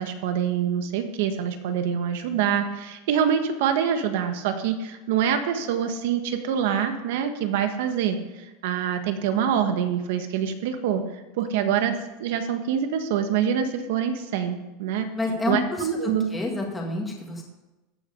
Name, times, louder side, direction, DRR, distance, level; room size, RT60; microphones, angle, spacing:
voice 1, 0.0-11.0 11.4-15.1 15.5-16.3, right 8 dB, 65° right, 7 dB, 1.5 m, -25 dB
voice 2, 15.2-15.9 16.3-17.4, left 2 dB, 10° left, 0 dB, 1.7 m, -28 dB
14.0 x 7.7 x 5.4 m, 1.1 s
supercardioid pair, 165°, 0 cm